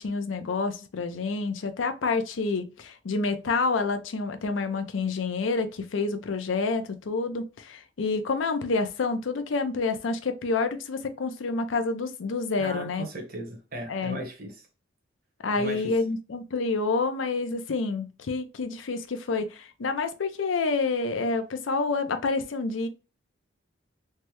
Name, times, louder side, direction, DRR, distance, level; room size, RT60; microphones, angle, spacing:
voice 1, 0.0-13.1 13.9-14.2 15.4-22.9, left 4 dB, 90° left, 0.5 m, -28 dB
voice 2, 12.6-14.5 15.5-15.9, right 1 dB, 50° right, 0.9 m, -37 dB
3.3 x 2.1 x 2.9 m
head